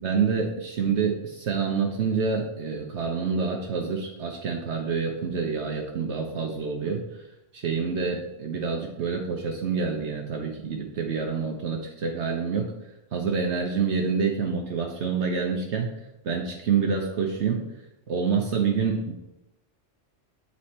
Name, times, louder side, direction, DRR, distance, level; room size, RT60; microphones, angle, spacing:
voice 1, 0.0-7.0 7.5-12.7 13.1-15.9 16.2-17.7 18.1-19.1, right 5 dB, 65° right, 1 dB, 1.0 m, -27 dB
8.1 x 4.2 x 4.2 m, 0.92 s
omnidirectional pair, 1.3 m